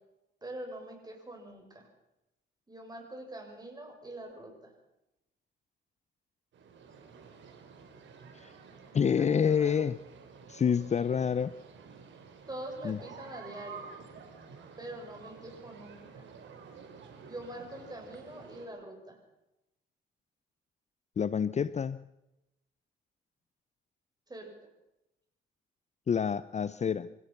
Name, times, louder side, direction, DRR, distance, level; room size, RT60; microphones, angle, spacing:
voice 1, 0.4-1.9 2.7-4.7 8.9-9.8 12.5-13.9 14.8-16.3 17.2-19.2 24.3-24.5, right 1 dB, 20° right, 2 dB, 7.4 m, -44 dB
sound 1, 6.5-18.7, right 5 dB, 70° right, 4.6 m, -51 dB
voice 2, 8.9-10.0 10.5-11.5 12.8-13.0 21.2-22.0 26.1-27.1, left 7 dB, 35° left, 16 dB, 0.6 m, -28 dB
26.5 x 16.5 x 5.9 m, 0.92 s
cardioid pair, 90°, 20 cm